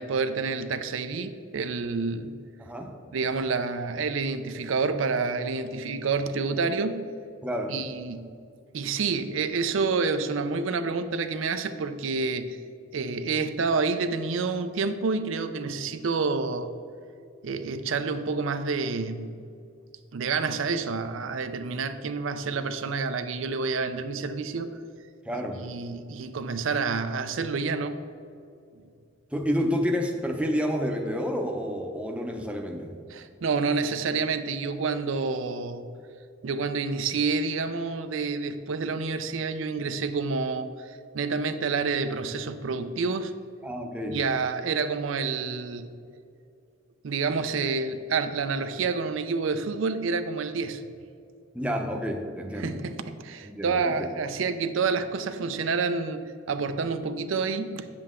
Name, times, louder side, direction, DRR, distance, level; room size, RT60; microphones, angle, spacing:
voice 1, 0.0-2.4 3.1-7.1 7.7-8.3 8.7-12.6 12.9-16.7 17.4-19.4 20.1-24.8 25.6-28.1 33.1-35.8 36.4-43.3 44.1-45.9 47.0-50.8 52.6-57.9, right 4 dB, 75° right, 9 dB, 0.5 m, -28 dB
voice 2, 2.6-2.9 7.4-7.8 25.2-25.6 29.3-32.9 43.6-44.2 51.5-52.8 53.4-54.1, equal, 5° right, 2 dB, 0.7 m, -29 dB
8.9 x 7.5 x 3.7 m, 2.4 s
head